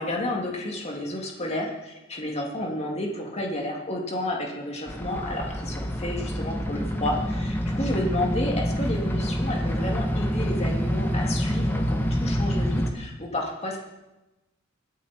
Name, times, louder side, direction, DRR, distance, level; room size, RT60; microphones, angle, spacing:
voice 1, 0.0-13.8, left 1 dB, 30° left, -1 dB, 2.6 m, -31 dB
sound 1, 4.9-12.9, equal, 10° left, 1.4 m, -27 dB
25.5 x 8.5 x 4.5 m, 1.0 s
head